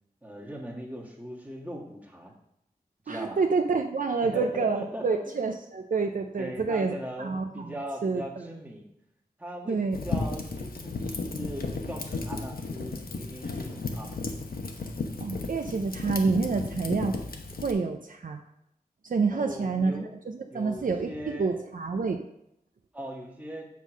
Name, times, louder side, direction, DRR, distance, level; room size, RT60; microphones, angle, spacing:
voice 1, 0.2-2.3 3.0-3.4 4.2-5.2 6.4-8.9 9.4-14.1 19.3-20.2 20.5-21.7 22.9-23.7, right 1 dB, 10° right, -2 dB, 1.4 m, -39 dB
voice 2, 3.1-7.7 8.0-8.5 9.7-10.0 15.2-17.2 17.6-18.4 19.0-22.2, right 4 dB, 60° right, 5 dB, 0.5 m, -28 dB
Fire, 9.9-17.7, left 3 dB, 70° left, 0.8 m, -34 dB
7.4 x 3.7 x 6.0 m, 0.78 s
wide cardioid pair, 100°, 16 cm